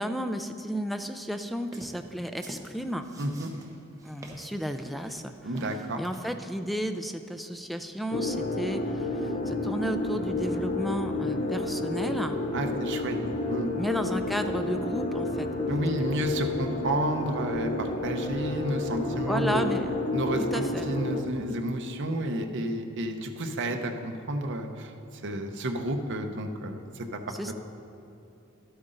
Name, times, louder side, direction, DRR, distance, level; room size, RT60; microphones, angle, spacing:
voice 1, 0.0-3.1 4.0-5.5 6.0-12.4 13.7-15.5 19.3-19.9 20.5-20.9 27.3-27.5, equal, ahead, 7 dB, 0.3 m, -33 dB
sound 1, 1.6-6.3, right 1 dB, 15° right, 0.9 m, -45 dB
voice 2, 3.2-3.5 5.4-6.0 12.5-13.2 13.5-13.7 15.7-19.6 20.1-24.9 25.2-27.2 27.5-27.6, right 1 dB, 60° right, 5 dB, 0.8 m, -31 dB
sound 2, 8.1-21.2, left 2 dB, 40° left, 0.6 m, -30 dB
12.5 x 8.0 x 3.8 m, 2.7 s
head